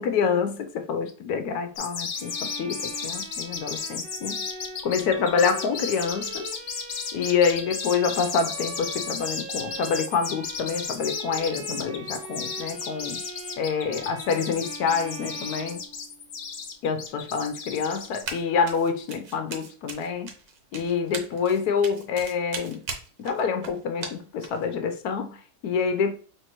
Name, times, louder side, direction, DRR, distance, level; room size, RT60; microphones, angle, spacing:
voice 1, 0.0-4.4 4.8-6.5 7.1-13.2 13.6-15.8 16.8-20.3 20.7-22.8 23.2-26.2, left 6 dB, 75° left, 1.2 m, -27 dB
sound 1, 1.8-18.2, left 6 dB, 50° left, 0.8 m, -34 dB
Bowed string instrument, 2.1-16.4, right 4 dB, 90° right, 0.4 m, -42 dB
Run, 18.3-18.4 18.7-24.6, right 4 dB, 70° right, 1.4 m, -37 dB
5.6 x 3.0 x 3.0 m
omnidirectional pair, 1.7 m